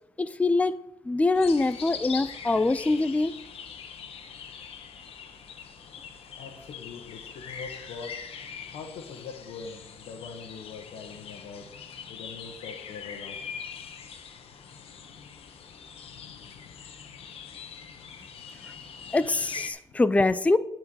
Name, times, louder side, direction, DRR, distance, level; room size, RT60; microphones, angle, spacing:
voice 1, 0.2-0.7 1.1-3.3 19.1-20.6, left 2 dB, 15° left, 14 dB, 0.4 m, -24 dB
sound 1, 1.3-19.7, left 7 dB, 70° left, 1.1 m, -42 dB
voice 2, 6.4-8.2 8.7-11.7 12.1-13.4, left 5 dB, 85° left, 0 dB, 1.3 m, -43 dB
11.0 x 4.6 x 6.3 m, 0.83 s
cardioid pair, 80°, 10 cm